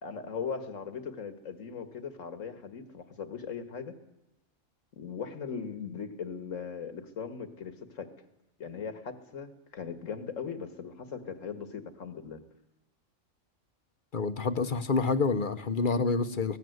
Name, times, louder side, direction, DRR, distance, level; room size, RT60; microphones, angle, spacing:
voice 1, 0.0-4.0 5.0-8.1 8.6-12.4, left 6 dB, 70° left, 10 dB, 2.1 m, -39 dB
voice 2, 14.1-16.6, left 4 dB, 40° left, 10 dB, 1.3 m, -28 dB
24.5 x 18.0 x 8.0 m, 0.92 s
omnidirectional pair, 1.4 m